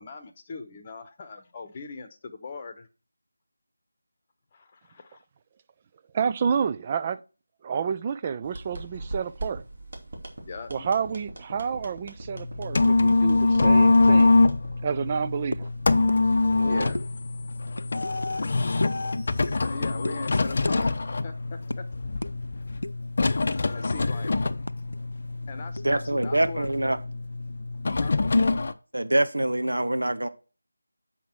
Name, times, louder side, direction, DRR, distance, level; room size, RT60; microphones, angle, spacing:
voice 1, 0.0-2.9 4.5-5.2 10.5-10.9 16.6-17.0 19.4-21.0 21.2-21.8 23.7-24.3 25.5-26.7 28.0-28.1, left 4 dB, 25° left, 1.0 m, -40 dB
voice 2, 6.1-7.2 7.6-9.6 10.7-14.4 14.8-15.7, right 6 dB, 20° right, 0.4 m, -29 dB
sound 1, 8.4-16.9, right 2 dB, 50° right, 2.4 m, -41 dB
sound 2, 12.3-28.7, left 3 dB, 45° left, 0.6 m, -24 dB
sound 3, 15.5-15.7 16.1-16.2 16.5-16.6 16.9-17.1 17.7-18.3 18.8-19.0 19.4-19.7 20.0-20.2 20.6-20.8 21.1-21.2 21.7-21.8 22.2-22.3 22.8-23.1 23.5-25.0 25.2-25.3 25.8-26.7, left 1 dB, 80° left, 0.4 m, -33 dB
voice 3, 25.8-27.0 28.9-30.3, right 1 dB, 75° right, 0.8 m, -24 dB
8.0 x 5.9 x 4.5 m
figure-of-eight pair, 165°, 0 cm